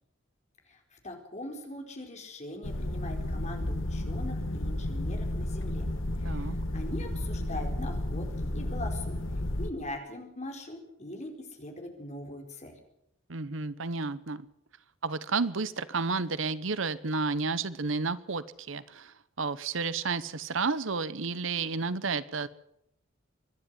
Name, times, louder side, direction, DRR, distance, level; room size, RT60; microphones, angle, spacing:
voice 1, 0.7-5.9 6.2-9.2 9.6-12.7, left 1 dB, 35° left, 3 dB, 4.5 m, -41 dB
sound 1, 2.6-9.7, left 1 dB, 65° left, 1.8 m, -32 dB
voice 2, 6.2-6.6 13.3-14.5 15.0-22.5, right 4 dB, 65° right, 16 dB, 0.9 m, -31 dB
24.5 x 11.0 x 9.7 m, 0.78 s
head